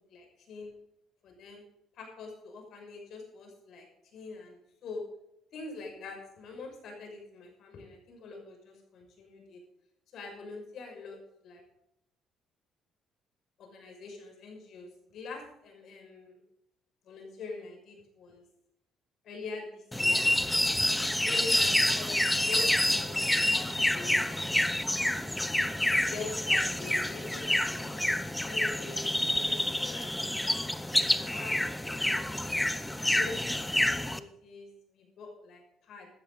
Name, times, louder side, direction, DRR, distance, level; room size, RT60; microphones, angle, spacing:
voice 1, 0.1-0.7 1.2-1.6 1.9-3.9 4.1-5.0 5.5-9.6 10.1-11.6 13.6-16.4 17.0-18.4 19.2-20.2 21.2-24.2 26.0-28.0 28.4-30.3 30.9-32.7 33.1-36.1, left 3 dB, 65° left, 2 dB, 6.3 m, -44 dB
sound 1, 19.9-34.2, left 1 dB, 5° left, 0.8 m, -28 dB
16.0 x 12.5 x 4.1 m, 0.81 s
cardioid pair, 110°, 0 cm